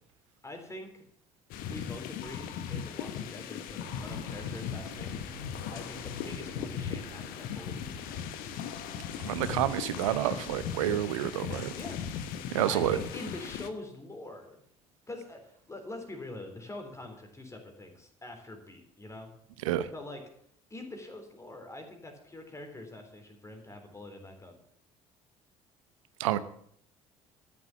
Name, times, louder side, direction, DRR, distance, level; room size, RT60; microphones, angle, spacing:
voice 1, 0.4-1.1 1.6-5.3 5.7-8.2 11.7-12.0 12.6-14.6 15.1-19.3 19.9-20.2 20.7-24.6, left 2 dB, 15° left, 4 dB, 3.6 m, -44 dB
sound 1, 1.5-13.7, left 8 dB, 60° left, 1.1 m, -38 dB
sound 2, 3.8-11.1, right 1 dB, 85° right, 1.4 m, -49 dB
voice 2, 9.2-11.7 12.5-13.0 19.6-19.9 26.2-26.4, right 13 dB, 70° right, 14 dB, 0.8 m, -29 dB
13.0 x 7.2 x 8.4 m, 0.67 s
figure-of-eight pair, 55°, 17 cm